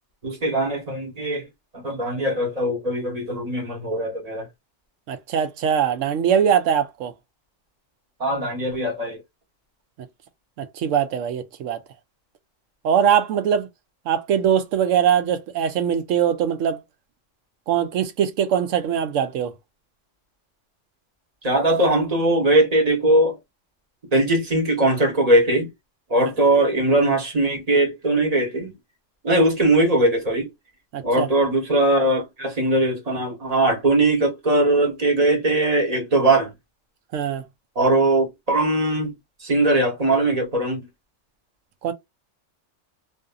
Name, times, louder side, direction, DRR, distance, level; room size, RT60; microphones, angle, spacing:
voice 1, 0.2-1.5 1.7-4.5 8.2-9.2 21.4-23.4 24.1-25.7 26.1-28.7 29.2-30.5 31.0-36.5 37.7-39.1 39.4-40.8, right 1 dB, 35° right, 1.1 m, -20 dB
voice 2, 5.1-7.1 10.6-11.8 12.8-13.7 14.1-16.8 17.7-19.5 30.9-31.3 37.1-37.4 41.8-41.9, right 8 dB, 90° right, 1.0 m, -21 dB
2.7 x 2.5 x 2.3 m
omnidirectional pair, 1.3 m